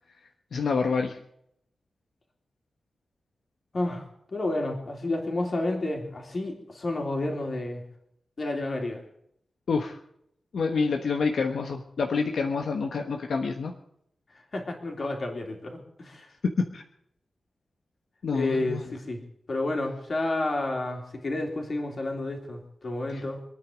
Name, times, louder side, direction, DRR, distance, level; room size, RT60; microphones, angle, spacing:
voice 1, 0.5-1.2 9.7-10.0 10.5-13.7 16.7-16.8 18.2-18.8 23.1-23.2, left 4 dB, 75° left, 3 dB, 1.3 m, -27 dB
voice 2, 3.7-4.1 4.3-7.8 8.4-9.0 14.5-16.3 18.3-19.2 19.5-23.4, left 2 dB, 40° left, 2 dB, 3.3 m, -30 dB
25.5 x 9.7 x 5.1 m, 0.73 s
wide cardioid pair, 170°, 0 cm